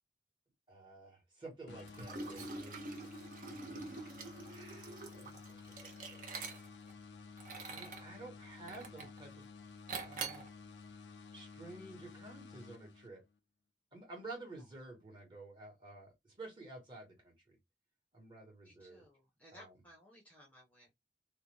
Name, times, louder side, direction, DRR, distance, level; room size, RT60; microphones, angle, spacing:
voice 1, 0.7-2.9 4.5-6.2 7.7-9.5 10.0-10.4 11.3-13.2 13.9-17.6 18.1-19.1 19.5-19.7, right 2 dB, 25° right, 1.1 m, -51 dB
sound 1, 1.7-13.4, left 4 dB, 75° left, 0.4 m, -53 dB
Liquid, 1.9-6.9 7.4-8.1 8.7-9.2 9.9-10.5, right 4 dB, 50° right, 0.6 m, -45 dB
voice 2, 18.6-20.9, equal, 10° left, 0.6 m, -60 dB
2.5 x 2.1 x 3.0 m
head